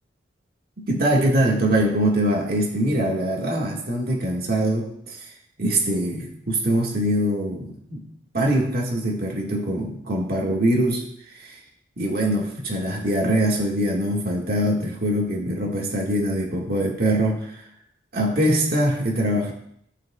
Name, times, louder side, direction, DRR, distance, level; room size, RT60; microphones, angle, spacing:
voice 1, 0.8-5.3 5.6-8.1 8.3-11.0 11.3-11.6 12.0-17.6 18.1-19.5, right 1 dB, 55° right, -1 dB, 1.7 m, -23 dB
16.5 x 6.2 x 2.3 m, 0.68 s
head